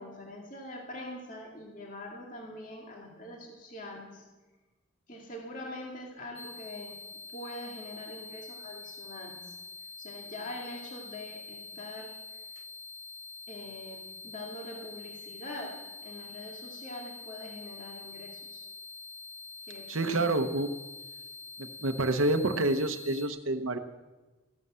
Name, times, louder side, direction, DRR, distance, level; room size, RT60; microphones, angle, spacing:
voice 1, 0.0-4.2 5.1-7.0 7.3-9.6 10.0-12.1 13.5-18.7 19.7-20.3, left 1 dB, 40° left, -1 dB, 2.4 m, -43 dB
sound 1, 6.4-23.3, left 4 dB, 70° left, 2.5 m, -46 dB
voice 2, 19.9-20.7 21.6-23.8, right 2 dB, 80° right, 7 dB, 0.9 m, -28 dB
15.0 x 11.0 x 7.5 m, 1.2 s
head